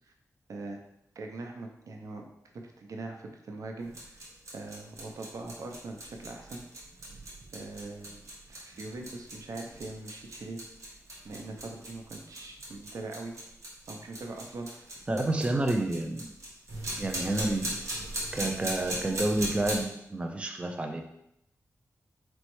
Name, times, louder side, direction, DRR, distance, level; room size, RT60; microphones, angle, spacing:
voice 1, 0.5-0.8 1.2-2.2 2.8-4.2 4.5-6.6 7.5-8.2 8.5-10.6 11.2-13.3 13.9-14.9, right 2 dB, 80° right, 2 dB, 0.6 m, -41 dB
sound 1, 3.8-19.8, right 1 dB, 60° right, 1.2 m, -39 dB
voice 2, 15.1-16.2 17.0-17.7 18.3-21.0, right 2 dB, 20° right, 4 dB, 0.3 m, -29 dB
4.4 x 3.1 x 3.0 m, 0.79 s
wide cardioid pair, 125°, 6 cm